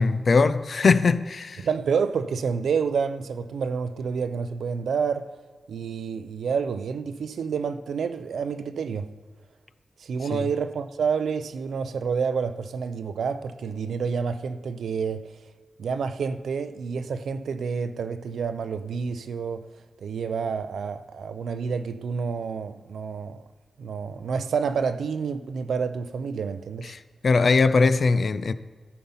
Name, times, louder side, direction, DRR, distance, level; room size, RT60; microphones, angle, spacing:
voice 1, 0.0-1.7 10.3-10.5 26.9-28.5, left 4 dB, 45° left, 0.4 m, -21 dB
voice 2, 1.6-5.3 5.7-9.1 10.0-15.3 15.8-19.7 20.0-23.4 23.8-26.9, right 6 dB, 85° right, 0.5 m, -29 dB
13.5 x 5.6 x 5.5 m
wide cardioid pair, 165°, 0 cm